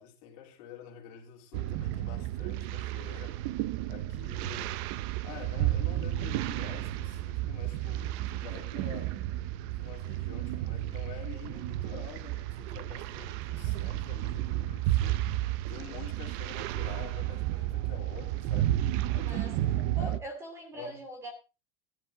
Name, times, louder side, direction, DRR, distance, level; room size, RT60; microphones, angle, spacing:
voice 1, 0.0-3.4 3.9-4.8 5.2-9.2 9.8-18.8 19.1-20.1 20.7-21.0, left 10 dB, 45° left, 3.5 m, -48 dB
sound 1, 1.5-20.2, right 14 dB, 45° right, 0.6 m, -32 dB
voice 2, 19.9-21.3, equal, 15° right, 2.7 m, -41 dB
15.0 x 11.0 x 3.9 m
supercardioid pair, 180°, 20 cm